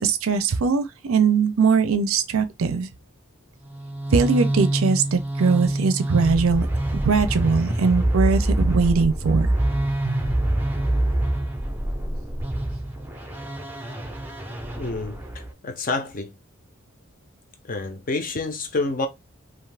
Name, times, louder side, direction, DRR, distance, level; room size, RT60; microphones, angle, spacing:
voice 1, 0.0-2.9 4.1-6.7 6.9-9.5 10.0-10.2, right 5 dB, 75° right, 0.5 m, -21 dB
sound 1, 3.7-15.5, right 1 dB, 10° right, 0.5 m, -25 dB
voice 2, 14.7-16.4 17.6-19.1, left 3 dB, 40° left, 0.5 m, -28 dB
2.5 x 2.4 x 3.3 m
head